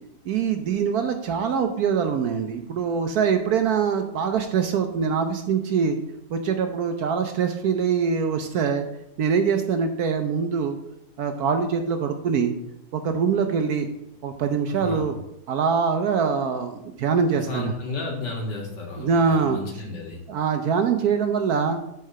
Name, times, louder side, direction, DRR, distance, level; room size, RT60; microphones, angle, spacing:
voice 1, 0.3-6.0 6.3-8.9 9.2-10.8 11.2-12.5 12.9-13.9 14.2-15.2 15.5-17.7 19.0-19.6 20.3-21.8, right 6 dB, 65° right, 7 dB, 1.0 m, -23 dB
voice 2, 14.7-15.1 17.3-20.2, left 3 dB, 70° left, 0 dB, 2.5 m, -33 dB
6.5 x 4.7 x 6.7 m, 0.82 s
omnidirectional pair, 2.0 m